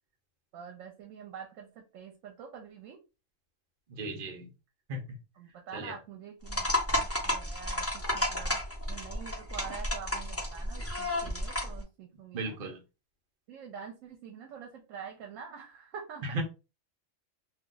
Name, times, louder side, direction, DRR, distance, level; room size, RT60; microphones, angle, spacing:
voice 1, 0.5-3.0 5.4-8.6 8.9-12.6 13.5-16.4, right 6 dB, 80° right, 1.0 m, -46 dB
voice 2, 3.9-4.5 4.9-5.2 5.7-6.0 12.3-12.8 16.3-16.4, right 2 dB, 50° right, 0.8 m, -36 dB
sound 1, 6.5-11.8, left 1 dB, 15° left, 0.6 m, -32 dB
2.3 x 2.3 x 3.7 m
omnidirectional pair, 1.3 m